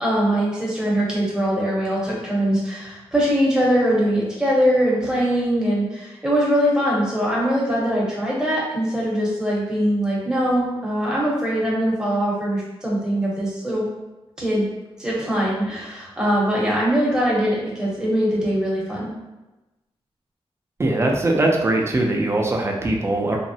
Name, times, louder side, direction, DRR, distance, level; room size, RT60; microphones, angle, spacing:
voice 1, 0.0-13.8 14.4-14.6 15.0-19.1, equal, 5° right, -6 dB, 0.8 m, -22 dB
voice 2, 20.8-23.4, right 2 dB, 25° right, 1 dB, 0.4 m, -21 dB
3.4 x 2.0 x 2.7 m, 1.0 s
wide cardioid pair, 145°, 10 cm